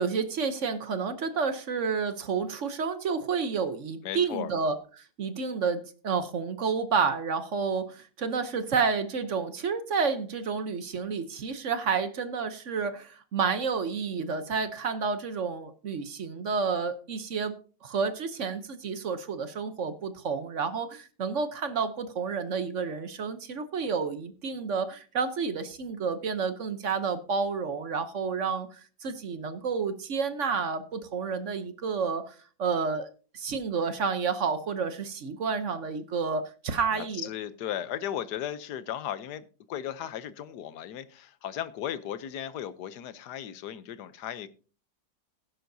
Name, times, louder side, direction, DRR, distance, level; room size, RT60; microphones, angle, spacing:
voice 1, 0.0-17.6 17.8-33.1 33.3-37.3, right 5 dB, 50° right, 10 dB, 1.0 m, -30 dB
voice 2, 4.0-4.5 36.9-44.5, left 10 dB, 70° left, 14 dB, 1.3 m, -36 dB
16.0 x 10.5 x 2.7 m, 0.38 s
omnidirectional pair, 2.0 m